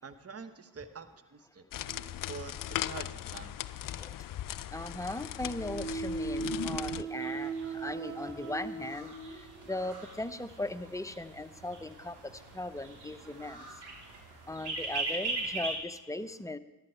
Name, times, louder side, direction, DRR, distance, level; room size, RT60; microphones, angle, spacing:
voice 1, 0.0-1.7 2.3-3.7, right 5 dB, 30° right, 10 dB, 1.1 m, -46 dB
sound 1, 1.7-7.0, left 12 dB, 50° left, 0.5 m, -38 dB
sound 2, 1.9-2.8 4.8-10.0 10.7-10.9 11.7-11.8, right 5 dB, 90° right, 1.6 m, -39 dB
voice 2, 4.7-13.7 14.5-16.6, left 2 dB, 5° left, 10 dB, 0.7 m, -38 dB
sound 3, 7.1-15.8, right 2 dB, 60° right, 3.4 m, -41 dB
13.5 x 12.5 x 4.5 m, 1.0 s
supercardioid pair, 55°, 45 cm